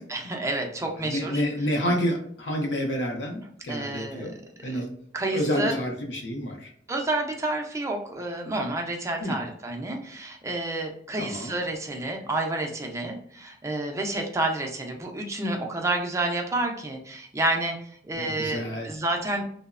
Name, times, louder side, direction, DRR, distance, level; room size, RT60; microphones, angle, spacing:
voice 1, 0.1-1.4 3.7-4.3 4.6-4.8 5.1-5.8 6.9-17.8 18.0-19.6, right 2 dB, 15° right, 2 dB, 0.4 m, -29 dB
voice 2, 1.0-4.4 4.6-4.9 5.3-6.7 9.2-9.4 11.2-11.5 18.1-18.9, equal, 75° left, 1 dB, 0.6 m, -29 dB
2.9 x 2.0 x 2.4 m, 0.64 s
head